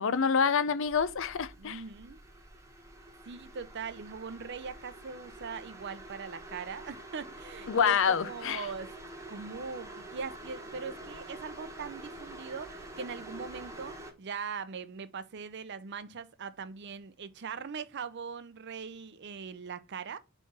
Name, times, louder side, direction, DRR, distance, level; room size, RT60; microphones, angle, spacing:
voice 1, 0.0-1.8 7.7-8.7, left 6 dB, 65° left, 0.5 m, -27 dB
sound 1, 0.9-14.1, right 1 dB, 15° right, 1.2 m, -47 dB
voice 2, 1.6-2.2 3.3-8.0 8.2-8.9 9.3-20.2, right 5 dB, 55° right, 0.6 m, -41 dB
4.6 x 4.4 x 5.9 m
head